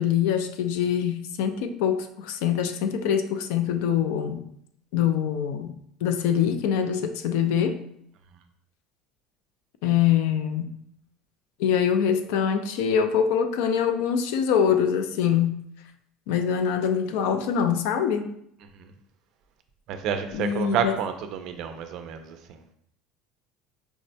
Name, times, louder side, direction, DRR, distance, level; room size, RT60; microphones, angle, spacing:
voice 1, 0.0-4.4 4.9-5.8 6.0-7.8 9.8-10.7 11.6-15.6 16.3-18.3 20.3-20.9, left 8 dB, 80° left, 8 dB, 0.3 m, -24 dB
voice 2, 19.9-22.6, right 7 dB, 55° right, 7 dB, 0.3 m, -30 dB
4.5 x 2.1 x 2.6 m, 0.71 s
cardioid pair, 155°, 0 cm